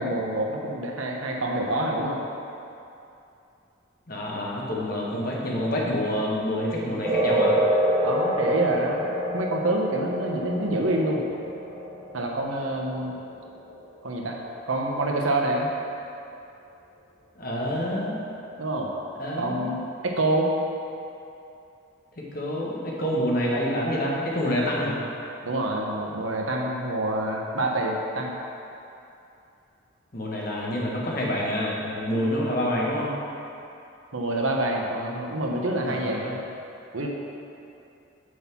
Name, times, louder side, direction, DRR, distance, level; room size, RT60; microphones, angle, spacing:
voice 1, 0.0-2.2 8.0-11.2 12.1-13.2 14.0-14.4 14.7-15.7 18.6-18.9 19.4-20.5 25.4-28.3 34.1-36.4 36.9-37.1, right 1 dB, 80° right, 0 dB, 1.0 m, -27 dB
voice 2, 4.1-7.6 17.4-18.2 19.2-19.8 22.3-25.0 30.1-33.1 35.8-36.2, equal, 45° left, -4 dB, 1.3 m, -27 dB
sound 1, 7.0-14.0, equal, 25° right, 2.0 m, -27 dB
6.3 x 5.6 x 6.0 m, 2.7 s
head